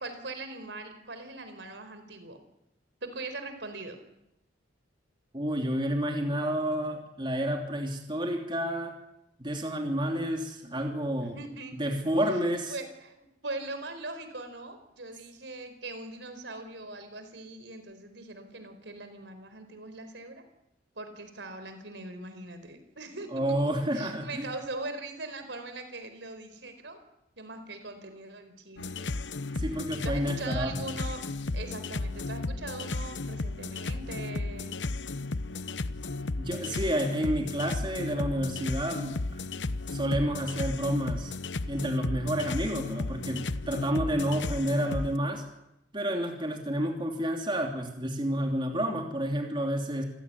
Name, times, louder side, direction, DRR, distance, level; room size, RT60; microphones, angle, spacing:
voice 1, 0.0-2.4 3.0-4.0 11.3-11.7 12.7-20.4 20.9-23.4 23.9-27.0 27.4-29.1 30.0-31.2 31.5-34.8, right 2 dB, 70° right, 9 dB, 4.6 m, -41 dB
voice 2, 5.3-8.9 9.4-11.4 11.8-12.7 23.3-24.5 29.6-30.7 36.4-39.1 39.9-41.3 41.7-45.4 45.9-50.0, equal, 25° right, 2 dB, 3.0 m, -30 dB
sound 1, 28.8-45.2, left 3 dB, 75° left, 0.9 m, -34 dB
28.0 x 16.5 x 9.9 m, 0.85 s
head